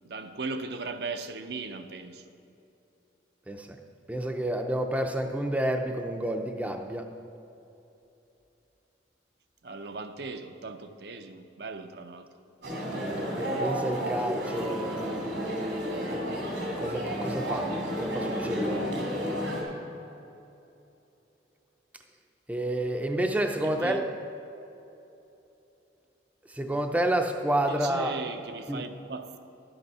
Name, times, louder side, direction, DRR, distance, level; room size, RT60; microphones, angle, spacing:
voice 1, 0.0-2.2 9.6-12.3 23.6-24.0 27.7-29.5, right 3 dB, 60° right, 7 dB, 0.5 m, -38 dB
voice 2, 3.5-3.8 4.1-7.1 13.0-14.9 16.8-17.7 18.0-18.9 22.5-24.1 26.5-28.1 28.7-28.8, right 1 dB, 10° right, 4 dB, 0.5 m, -29 dB
sound 1, 12.6-19.6, equal, 85° right, 2.9 m, -31 dB
11.5 x 8.0 x 5.5 m, 2.9 s
head